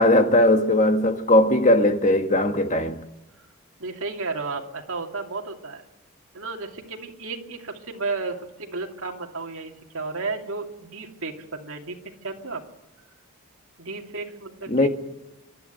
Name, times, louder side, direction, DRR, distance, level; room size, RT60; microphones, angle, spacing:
voice 1, 0.0-3.0 14.7-14.9, left 1 dB, 35° left, 1.5 m, -19 dB
voice 2, 3.8-5.8 6.3-12.0 12.2-12.6 13.8-14.9, right 3 dB, 65° right, 2.6 m, -33 dB
25.0 x 12.0 x 9.3 m
head